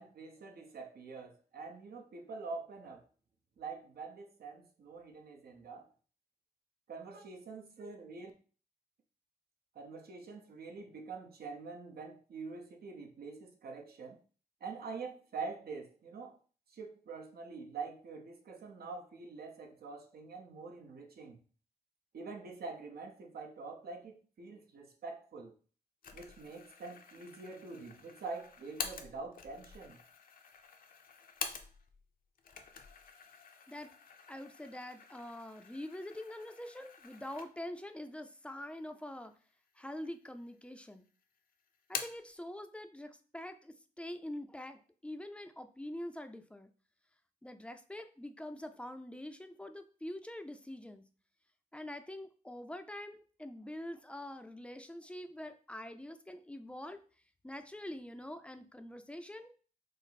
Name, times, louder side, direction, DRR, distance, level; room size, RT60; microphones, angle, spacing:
voice 1, 0.0-3.0 3.6-5.9 6.9-8.3 9.7-14.2 14.6-16.4 16.7-21.4 22.1-25.5 26.1-30.0, right 4 dB, 80° right, 0.8 m, -45 dB
sound 1, 26.0-32.0 32.4-37.8 38.2-38.3 39.2-39.8 40.2-40.9 41.2-42.3, left 6 dB, 65° left, 0.6 m, -47 dB
voice 2, 34.3-39.3 39.8-41.0 41.9-46.7 47.4-51.0 51.7-57.0 57.4-59.5, left 1 dB, 5° left, 0.4 m, -45 dB
5.0 x 2.0 x 4.0 m
wide cardioid pair, 100°, 16 cm